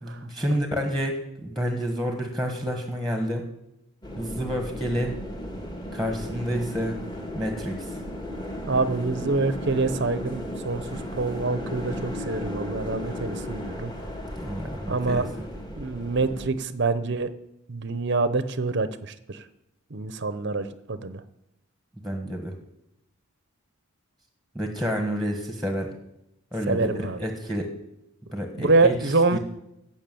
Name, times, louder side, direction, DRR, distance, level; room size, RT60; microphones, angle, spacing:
voice 1, 0.0-3.5 4.2-5.2 5.9-7.0 7.3-8.0 14.4-15.5 22.0-22.5 24.5-25.9 26.5-27.7 28.3-29.4, equal, ahead, 4 dB, 1.4 m, -29 dB
sound 1, 4.0-16.5, equal, 20° left, 1.7 m, -35 dB
voice 2, 8.7-13.9 14.9-15.2 15.8-17.3 17.7-19.4 19.9-21.2 26.7-27.2 28.6-29.4, right 3 dB, 50° right, 12 dB, 0.7 m, -26 dB
17.0 x 6.1 x 7.7 m, 0.85 s
head